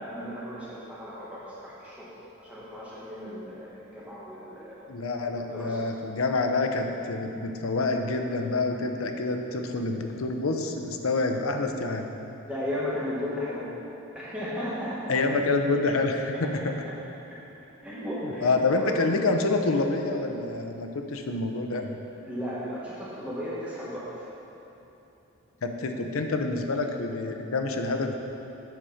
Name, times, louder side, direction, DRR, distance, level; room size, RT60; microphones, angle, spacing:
voice 1, 0.0-2.1 2.4-4.8 5.3-5.8 12.4-13.7 14.1-15.2 17.8-18.9 22.1-24.3, left 1 dB, 5° right, -9 dB, 1.2 m, -35 dB
voice 2, 4.9-12.1 15.1-16.7 18.4-22.0 25.6-28.1, left 3 dB, 80° left, 4 dB, 0.7 m, -27 dB
8.1 x 4.9 x 5.7 m, 3.0 s
head